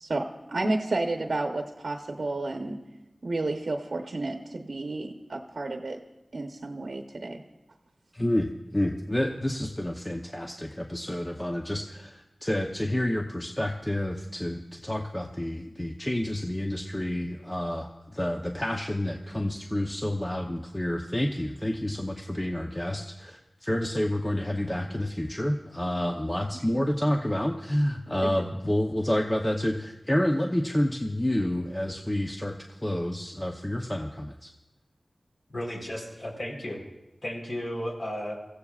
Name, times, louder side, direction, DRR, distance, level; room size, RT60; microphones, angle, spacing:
voice 1, 0.0-2.8 3.2-6.0 6.3-7.4 26.7-26.9 28.1-28.3, right 2 dB, 75° right, 3 dB, 0.9 m, -31 dB
voice 2, 8.1-34.5, left 1 dB, 15° left, 2 dB, 0.8 m, -29 dB
voice 3, 35.5-36.8 37.2-38.4, equal, 60° left, -1 dB, 3.9 m, -34 dB
24.5 x 15.0 x 2.4 m, 0.99 s
wide cardioid pair, 70°, 0 cm